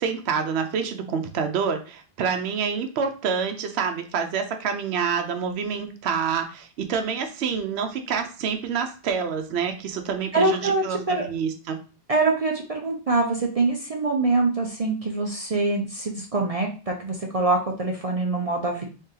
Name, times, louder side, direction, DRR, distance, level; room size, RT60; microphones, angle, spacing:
voice 1, 0.0-11.8, right 6 dB, 80° right, 6 dB, 0.9 m, -27 dB
voice 2, 10.3-11.2 12.1-18.9, right 3 dB, 45° right, 1 dB, 0.5 m, -24 dB
3.8 x 3.6 x 2.7 m, 0.37 s
omnidirectional pair, 1.1 m